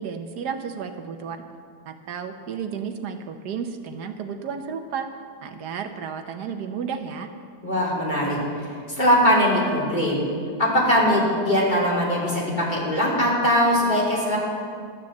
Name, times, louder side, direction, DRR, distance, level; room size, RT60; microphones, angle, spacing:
voice 1, 0.0-1.4 1.9-5.1 5.4-7.3, right 6 dB, 75° right, 6 dB, 1.4 m, -32 dB
voice 2, 7.6-10.2 10.6-14.4, equal, 25° left, -5 dB, 3.3 m, -21 dB
12.5 x 10.0 x 7.3 m, 2.2 s
omnidirectional pair, 1.8 m